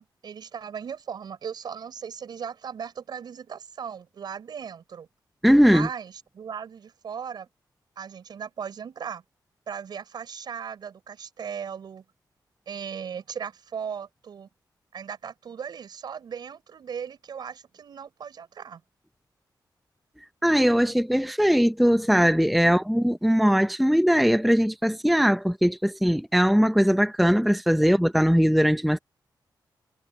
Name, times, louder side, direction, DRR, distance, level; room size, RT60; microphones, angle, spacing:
voice 1, 0.0-5.1 5.6-7.5 8.0-9.2 9.7-12.0 12.7-14.5 14.9-18.8, right 7 dB, 70° right, 6.3 m, -37 dB
voice 2, 5.4-5.9 20.4-29.0, equal, ahead, 0.5 m, -20 dB
wide cardioid pair, 165°, 8 cm